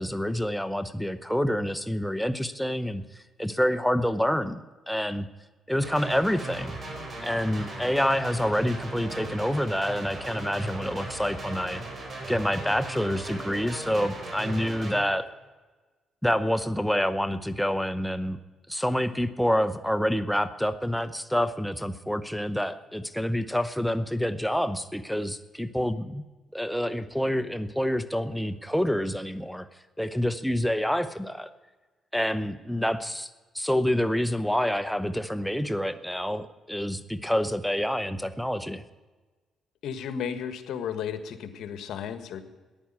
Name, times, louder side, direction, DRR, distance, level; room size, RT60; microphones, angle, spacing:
voice 1, 0.0-3.0 3.4-4.6 4.9-5.3 5.7-6.8 7.2-11.8 12.3-15.3 16.2-18.4 18.7-26.2 26.5-29.7 30.0-31.5 32.1-33.3 33.5-38.8, equal, ahead, 10 dB, 0.8 m, -27 dB
sound 1, 5.8-15.0, right 2 dB, 40° right, 4.9 m, -38 dB
voice 2, 39.8-42.4, left 8 dB, 75° left, 10 dB, 1.5 m, -34 dB
14.0 x 10.5 x 8.8 m, 1.3 s
cardioid pair, 90°, 0 cm